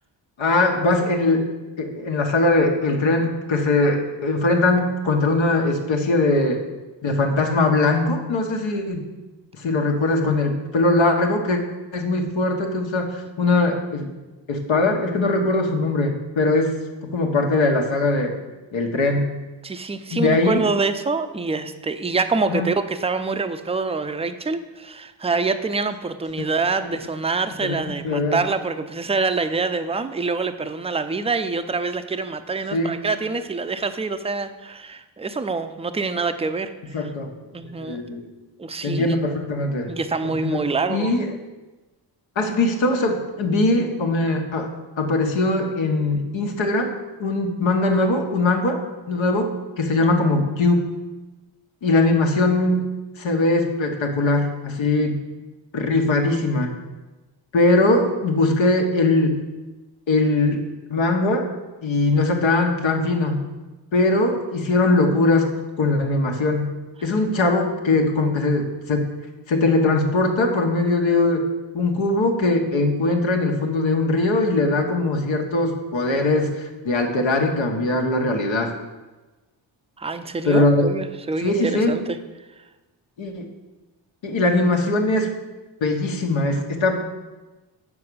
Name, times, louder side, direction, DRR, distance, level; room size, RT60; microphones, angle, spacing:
voice 1, 0.4-1.5 1.8-6.6 7.0-9.1 9.6-11.6 11.9-14.1 14.5-16.8 17.1-18.3 18.7-19.3 20.1-20.6 22.5-22.7 26.4-26.5 27.6-28.4 32.7-32.9 36.9-37.3 37.6-38.2 38.8-39.9 40.2-41.3 42.3-44.7 45.0-46.9 47.2-48.8 49.1-50.8 51.8-52.9 53.2-55.2 55.7-56.7 57.5-59.4 60.1-60.6 60.9-61.5 61.8-63.4 63.9-65.5 65.8-66.7 67.0-69.1 69.5-71.5 71.7-78.7 80.4-80.9 81.4-82.0 83.2-83.4 84.2-85.3 85.8-87.0, left 2 dB, 70° left, 3 dB, 1.4 m, -21 dB
voice 2, 19.6-36.7 37.0-37.1 37.5-38.0 38.6-39.2 39.9-41.2 80.0-82.2, right 4 dB, 15° right, 9 dB, 0.5 m, -26 dB
6.8 x 4.9 x 6.8 m, 1.2 s
cardioid pair, 70°, 47 cm